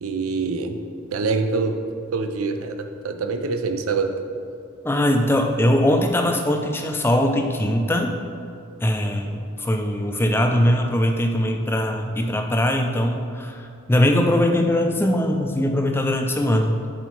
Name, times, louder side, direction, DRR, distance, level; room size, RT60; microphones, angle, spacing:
voice 1, 0.0-0.8 1.1-1.8 2.1-4.1, right 4 dB, 85° right, 7 dB, 0.6 m, -25 dB
voice 2, 4.8-8.2 8.8-16.9, left 1 dB, 10° left, 4 dB, 0.4 m, -21 dB
7.8 x 4.1 x 4.7 m, 2.5 s
head